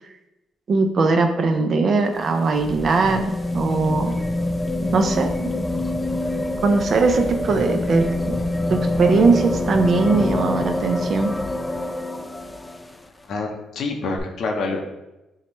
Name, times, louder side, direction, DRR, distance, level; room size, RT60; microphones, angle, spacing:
voice 1, 0.7-4.1 4.9-5.5 6.6-8.3 8.7-11.3, right 4 dB, 50° right, 5 dB, 0.5 m, -20 dB
sound 1, 2.0-13.0 14.2-14.3, left 2 dB, 15° left, 0.3 m, -26 dB
voice 2, 13.2-14.8, left 3 dB, 65° left, 3 dB, 0.6 m, -27 dB
5.5 x 2.1 x 3.0 m, 0.99 s
cardioid pair, 90°, 0 cm